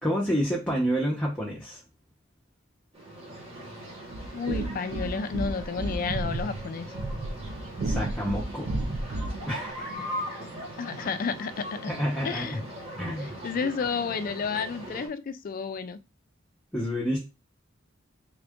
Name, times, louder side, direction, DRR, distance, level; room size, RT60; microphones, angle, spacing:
voice 1, 0.0-1.8 7.8-8.7 9.5-10.1 11.9-12.7 13.0-13.4 16.7-17.2, equal, 5° left, 0.8 m, -29 dB
sound 1, 2.9-15.1, equal, 30° right, 1.2 m, -40 dB
sound 2, 4.1-9.5, right 2 dB, 55° right, 0.5 m, -32 dB
voice 2, 4.3-6.9 10.8-11.9 12.2-12.6 13.4-16.0, left 5 dB, 45° left, 0.4 m, -31 dB
3.6 x 2.5 x 3.5 m
head